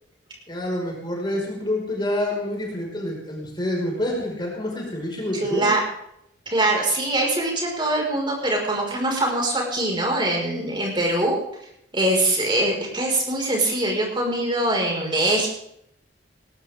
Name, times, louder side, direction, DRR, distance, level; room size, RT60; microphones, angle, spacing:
voice 1, 0.5-5.7, left 1 dB, 25° left, -1 dB, 5.3 m, -27 dB
voice 2, 5.4-5.8 6.5-11.4 11.9-15.5, right 1 dB, 25° right, 0 dB, 5.4 m, -23 dB
19.5 x 18.0 x 3.7 m, 0.75 s
head